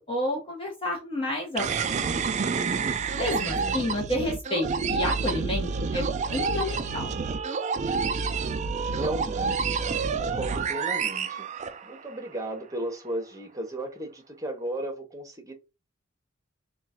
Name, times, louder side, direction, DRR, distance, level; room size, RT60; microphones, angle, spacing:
voice 1, 0.0-2.2 3.2-6.0 6.3-7.2, left 1 dB, 25° left, 1.0 m, -30 dB
sound 1, 1.6-12.2, right 5 dB, 35° right, 0.4 m, -28 dB
voice 2, 3.3-3.9 8.9-9.8 10.2-11.5 11.8-15.5, right 1 dB, 15° right, 0.9 m, -35 dB
3.7 x 2.3 x 4.2 m
head